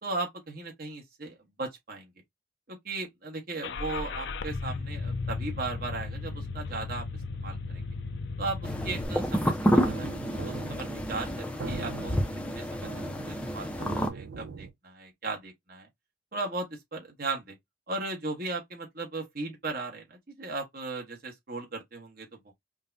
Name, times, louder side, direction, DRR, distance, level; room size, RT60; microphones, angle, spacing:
voice 1, 0.0-2.1 2.7-7.1 7.4-7.9 8.4-10.1 10.4-12.2 12.5-15.9 16.3-17.6 17.9-22.5, right 3 dB, 50° right, 1.2 m, -37 dB
Car / Engine starting, 3.6-9.0, left 3 dB, 65° left, 0.5 m, -35 dB
sound 1, 8.6-14.1, equal, 5° left, 0.5 m, -29 dB
sound 2, 9.6-14.7, right 4 dB, 80° right, 0.7 m, -41 dB
5.1 x 2.1 x 2.7 m
head